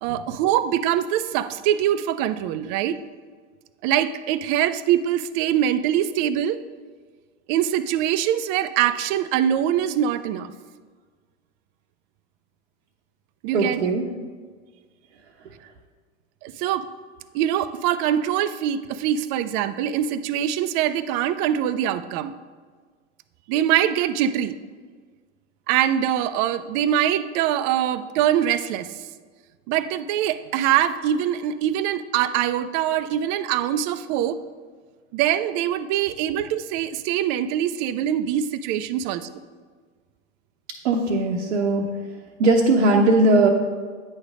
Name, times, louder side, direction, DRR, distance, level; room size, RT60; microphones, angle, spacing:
voice 1, 0.0-3.0 3.8-6.6 7.5-10.5 13.4-13.8 16.4-16.9 17.3-22.3 23.5-24.6 25.7-29.1 29.7-34.4 35.1-39.3, right 10 dB, 40° right, 13 dB, 0.4 m, -23 dB
voice 2, 13.5-14.0 40.8-41.9 42.4-43.5, right 2 dB, 75° right, -2 dB, 0.8 m, -19 dB
9.3 x 3.3 x 4.8 m, 1.5 s
hypercardioid pair, 100°, 35 cm